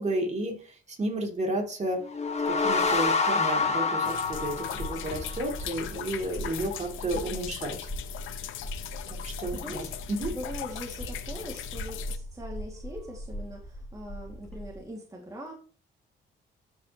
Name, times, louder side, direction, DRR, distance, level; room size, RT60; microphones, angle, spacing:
voice 1, 0.0-2.0 2.5-7.9 9.1-10.3, right 1 dB, 35° right, 1 dB, 3.0 m, -32 dB
sound 1, 2.0-5.5, left 4 dB, 35° left, 1.8 m, -27 dB
sound 2, 4.0-12.2, left 12 dB, 85° left, 0.8 m, -39 dB
sound 3, 4.3-14.8, equal, 5° left, 3.0 m, -40 dB
voice 2, 9.2-9.9 10.3-15.5, equal, 15° right, -1 dB, 2.3 m, -41 dB
12.5 x 5.4 x 3.1 m, 0.40 s
cardioid pair, 90°, 20 cm